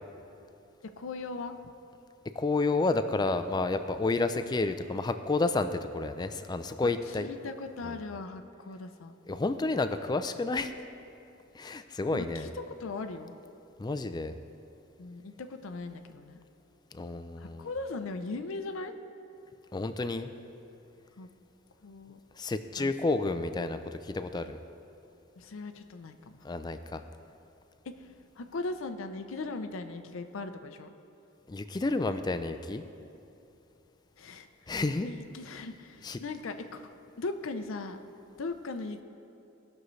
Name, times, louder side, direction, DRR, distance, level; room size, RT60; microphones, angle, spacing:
voice 1, 1.0-1.5 6.8-9.1 12.1-12.5 12.8-13.3 15.0-16.4 17.4-18.9 21.2-21.3 21.8-22.2 22.8-22.9 25.4-26.4 27.9-30.9 34.2-34.8 35.0-36.9 37.2-38.0 38.4-39.0, left 3 dB, 70° left, 8 dB, 0.5 m, -39 dB
voice 2, 2.4-7.3 7.8-7.9 9.3-10.7 11.6-12.5 13.8-14.3 16.9-17.7 19.7-20.3 22.4-24.6 26.4-27.0 31.5-32.8 34.7-35.1 36.0-36.2, left 3 dB, 20° left, 10 dB, 0.3 m, -30 dB
17.5 x 6.4 x 3.2 m, 2.8 s
head